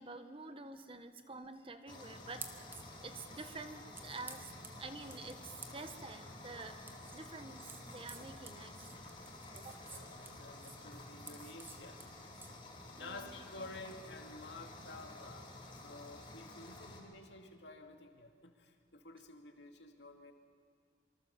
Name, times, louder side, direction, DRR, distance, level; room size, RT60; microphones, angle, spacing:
voice 1, 0.0-2.5 2.7-9.1 9.5-9.8 13.0-13.4, right 3 dB, 30° right, 8 dB, 1.3 m, -49 dB
sound 1, 1.9-17.0, left 2 dB, 30° left, 4.1 m, -51 dB
sound 2, 2.3-12.6, right 3 dB, 10° right, 1.5 m, -54 dB
voice 2, 9.9-12.1 13.0-20.3, left 2 dB, 85° left, 4 dB, 2.4 m, -52 dB
25.0 x 24.5 x 7.2 m, 2.3 s
head